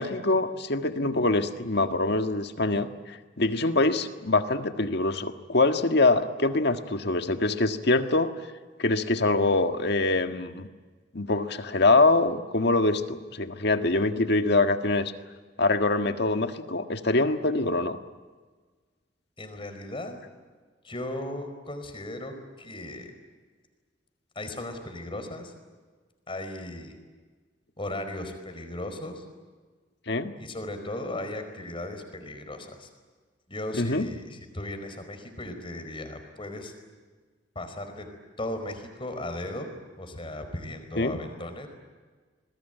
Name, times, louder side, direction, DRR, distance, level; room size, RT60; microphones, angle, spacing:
voice 1, 0.0-8.3 8.8-10.7 11.1-15.1 15.6-18.0 30.1-30.3 33.8-34.1 41.0-41.2, left 2 dB, 65° left, 7 dB, 1.7 m, -24 dB
voice 2, 19.4-20.3 20.8-23.1 24.3-25.5 26.3-27.0 27.8-29.2 30.4-32.9 33.5-36.7 37.5-38.1 38.4-39.7 40.0-41.7, left 1 dB, 30° left, 7 dB, 4.8 m, -36 dB
28.0 x 21.0 x 9.2 m, 1.4 s
head